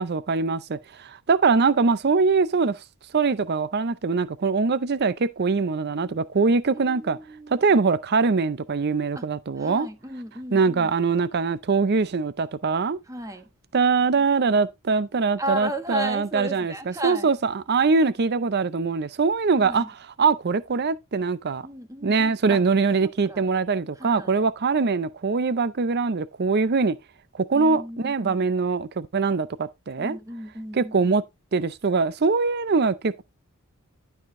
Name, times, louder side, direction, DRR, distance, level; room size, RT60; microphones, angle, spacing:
voice 1, 0.0-2.8 3.1-7.2 7.5-9.9 10.5-13.0 13.7-19.9 20.2-21.6 22.0-27.0 27.3-30.2 30.7-31.2 31.5-33.2, right 4 dB, 50° right, 0.5 m, -23 dB
voice 2, 6.7-7.8 9.1-9.3 9.6-10.9 13.1-13.5 15.4-17.3 19.6-19.9 21.6-22.6 23.0-23.5 24.0-24.4 27.5-28.4 30.0-31.0, right 1 dB, 15° right, 1.2 m, -35 dB
12.0 x 4.9 x 3.7 m
head